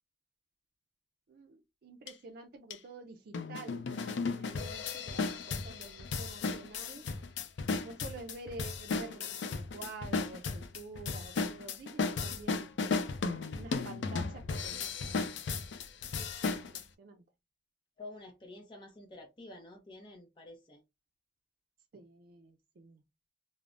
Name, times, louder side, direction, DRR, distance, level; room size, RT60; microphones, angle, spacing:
voice 1, 1.3-7.0 7.8-12.7 13.5-15.4 16.5-17.2 21.9-23.0, right 3 dB, 55° right, 0.4 m, -49 dB
sound 1, 2.1-2.2 2.7-2.8 3.3-16.8, left 4 dB, 90° left, 0.4 m, -35 dB
voice 2, 18.0-20.8, left 2 dB, 25° left, 0.6 m, -49 dB
3.2 x 2.0 x 2.4 m
head